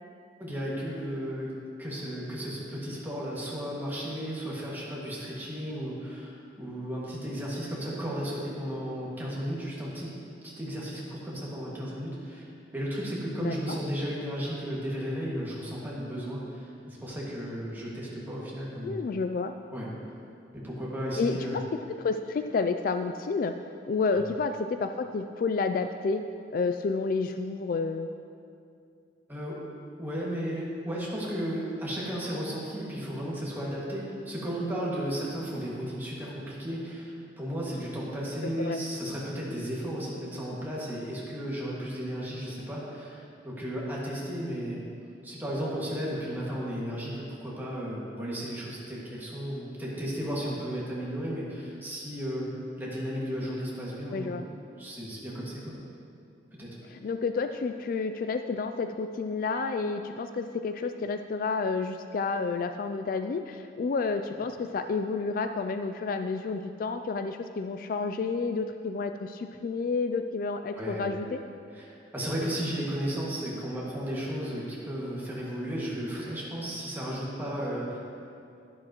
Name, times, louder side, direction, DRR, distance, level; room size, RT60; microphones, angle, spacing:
voice 1, 0.4-1.5 1.8-10.1 10.4-19.0 19.7-19.9 20.5-21.6 24.1-24.2 29.3-29.6 30.0-44.8 45.2-52.5 52.8-54.3 54.8-55.8 56.6-56.8 70.8-71.0 71.7-78.0, equal, 10° right, -6 dB, 2.0 m, -34 dB
voice 2, 13.4-13.8 18.8-19.5 21.2-21.6 21.9-23.5 23.9-26.2 26.5-28.1 38.4-38.8 54.1-54.5 56.9-71.4, left 4 dB, 50° left, 8 dB, 0.3 m, -30 dB
12.0 x 10.5 x 3.0 m, 2.5 s
head